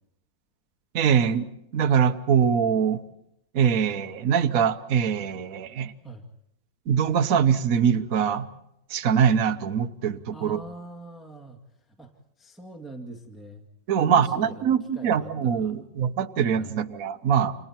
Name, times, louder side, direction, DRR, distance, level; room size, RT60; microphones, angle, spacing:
voice 1, 0.9-1.5 1.7-3.0 3.5-5.9 6.9-8.5 8.9-10.6 13.9-17.6, right 7 dB, 55° right, 8 dB, 1.3 m, -23 dB
voice 2, 10.3-11.6 11.9-12.1 12.4-13.6 13.9-15.8 16.5-16.8, right 1 dB, ahead, 2 dB, 1.9 m, -43 dB
30.0 x 27.0 x 4.4 m, 0.79 s
omnidirectional pair, 2.0 m